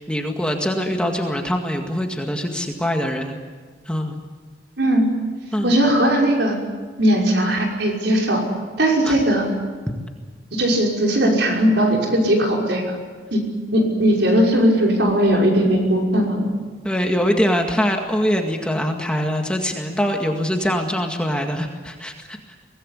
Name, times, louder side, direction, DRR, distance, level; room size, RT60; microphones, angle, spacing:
voice 1, 0.0-3.4 3.9-4.2 5.5-5.7 9.0-9.2 16.8-22.4, equal, 5° left, 2 dB, 2.0 m, -23 dB
voice 2, 5.6-6.6 7.0-8.4 8.8-9.5 10.5-13.0 13.3-13.4 13.7-16.5, right 1 dB, 70° right, 0 dB, 5.7 m, -18 dB
24.0 x 19.0 x 9.9 m, 1.5 s
head